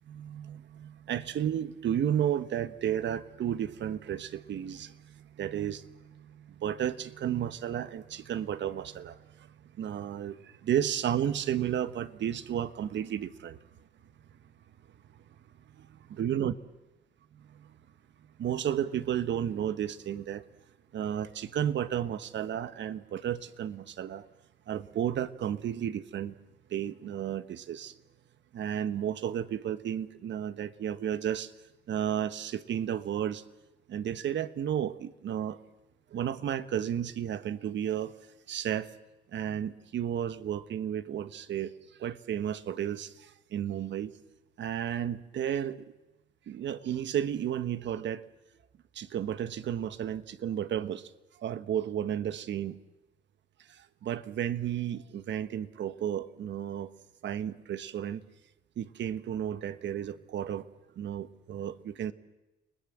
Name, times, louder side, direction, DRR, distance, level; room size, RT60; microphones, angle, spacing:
voice 1, 0.1-9.2 9.8-13.6 15.8-16.5 17.5-17.7 18.4-20.5 20.9-24.2 24.7-26.3 26.7-27.9 28.5-31.5 31.9-33.4 33.9-35.6 36.1-38.1 38.5-38.9 39.3-41.7 42.0-44.1 44.6-45.8 46.5-48.2 48.9-51.1 51.4-52.8 54.0-56.9 57.2-58.2 58.8-60.7 61.0-62.1, right 10 dB, 65° right, 13 dB, 1.3 m, -33 dB
30.0 x 20.0 x 7.5 m, 1.0 s
cardioid pair, 90°, 20 cm